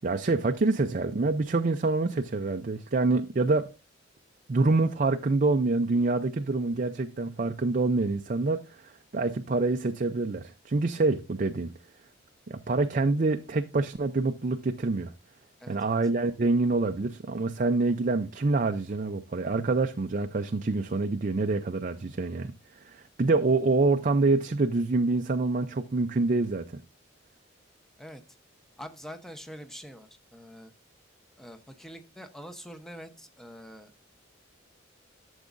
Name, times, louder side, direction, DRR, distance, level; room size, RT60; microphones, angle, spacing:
voice 1, 0.0-3.7 4.5-11.7 12.5-15.1 15.7-22.5 22.8-26.8, right 3 dB, 40° right, 0.4 m, -26 dB
voice 2, 15.6-16.0 28.0-28.2 28.8-30.7 31.4-33.9, equal, ahead, 0.8 m, -45 dB
12.0 x 7.1 x 2.6 m
head